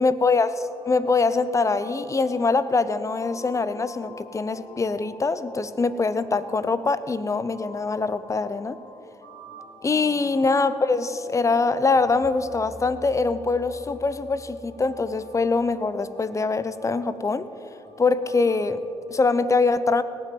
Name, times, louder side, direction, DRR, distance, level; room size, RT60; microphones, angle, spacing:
voice 1, 0.0-8.8 9.8-17.5 18.0-18.8 19.1-20.0, left 4 dB, 30° left, 14 dB, 0.8 m, -23 dB
sound 1, 0.6-18.9, left 1 dB, 50° left, 4.1 m, -47 dB
18.0 x 6.3 x 9.4 m, 2.8 s
supercardioid pair, 65°, 11 cm